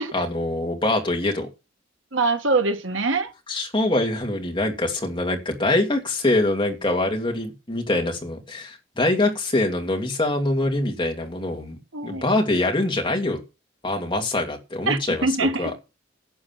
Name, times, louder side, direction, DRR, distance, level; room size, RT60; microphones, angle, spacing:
voice 1, 0.1-1.5 3.5-13.4 13.8-15.3 15.6-15.7, left 2 dB, 25° left, 2.6 m, -24 dB
voice 2, 2.1-3.3 11.9-12.3 14.9-15.7, right 3 dB, 85° right, 1.8 m, -23 dB
11.5 x 7.1 x 5.9 m
head